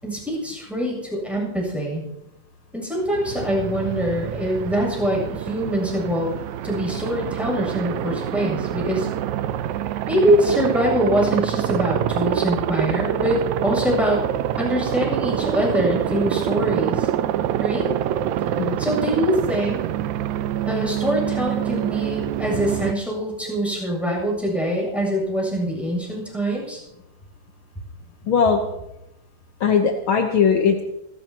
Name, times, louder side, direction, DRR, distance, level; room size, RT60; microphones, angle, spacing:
voice 1, 0.0-2.0 2.7-9.1 10.1-14.2 14.6-17.1 17.6-17.9 18.8-19.8 20.7-26.8, equal, ahead, -3 dB, 7.5 m, -24 dB
Aircraft, 3.1-22.9, right 11 dB, 75° right, 1.9 m, -26 dB
voice 2, 28.3-28.6 29.6-30.8, left 6 dB, 65° left, 4 dB, 1.3 m, -19 dB
28.5 x 14.0 x 3.0 m, 0.87 s
omnidirectional pair, 3.6 m